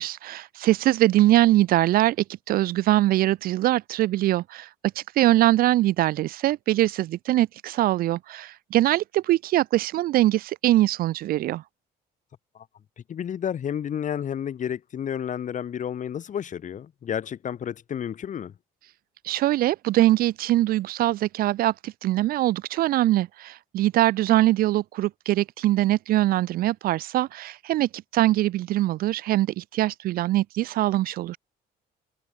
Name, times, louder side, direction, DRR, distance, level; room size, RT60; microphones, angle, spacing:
voice 1, 0.0-2.2 2.5-4.7 5.0-11.6 19.2-31.4, right 15 dB, 60° right, 0.4 m, -22 dB
voice 2, 13.1-18.5, left 9 dB, 50° left, 3.4 m, -31 dB
cardioid pair, 110°, 17 cm